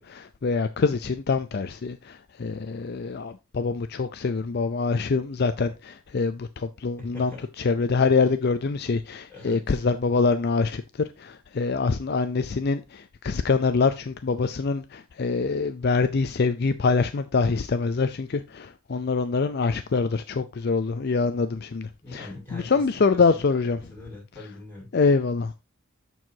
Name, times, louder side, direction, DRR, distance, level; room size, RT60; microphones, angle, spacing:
voice 1, 0.0-7.3 7.6-23.8 24.9-25.6, left 4 dB, 50° left, 0.4 m, -25 dB
voice 2, 7.0-7.4 9.3-9.6 22.0-23.4 23.9-24.9, left 3 dB, 10° left, 5.8 m, -41 dB
13.5 x 4.7 x 2.7 m
head